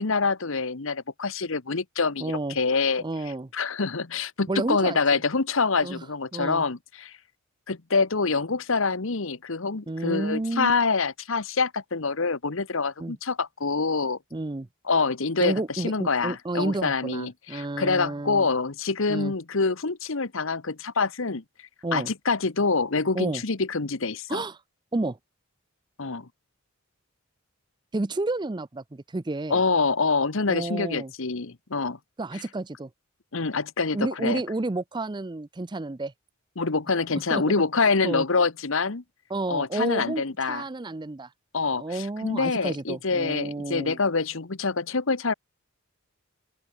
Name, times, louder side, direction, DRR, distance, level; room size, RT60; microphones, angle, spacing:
voice 1, 0.0-3.0 3.5-7.1 7.7-14.2 14.9-21.4 21.9-24.4 26.0-26.3 29.5-32.0 32.3-32.4 33.3-34.4 36.6-39.0 39.5-40.6 41.5-45.3, left 4 dB, 60° left, 1.1 m, -26 dB
voice 2, 2.2-2.6 3.0-3.5 4.5-5.2 5.8-6.1 6.3-6.6 9.9-10.7 13.0-13.2 14.3-14.7 15.4-18.5 19.1-19.3 21.8-22.1 23.1-23.4 24.3-24.6 24.9-25.2 27.9-29.6 30.5-31.1 32.2-32.9 33.9-36.1 37.1-38.3 39.3-41.3 41.8-44.0, right 2 dB, 20° right, 0.5 m, -31 dB
open air
head